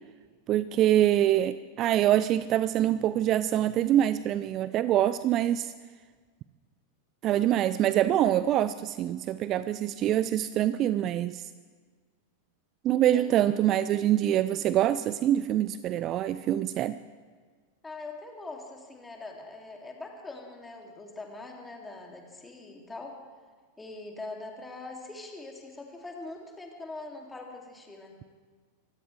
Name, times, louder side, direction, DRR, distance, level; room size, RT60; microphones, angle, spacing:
voice 1, 0.5-5.7 7.2-11.5 12.8-17.0, right 12 dB, 35° right, 15 dB, 0.4 m, -25 dB
voice 2, 12.9-13.7 17.8-23.2 23.8-28.2, left 2 dB, 10° left, 1 dB, 2.6 m, -43 dB
24.5 x 16.5 x 3.3 m, 1.5 s
figure-of-eight pair, 90°, 0 cm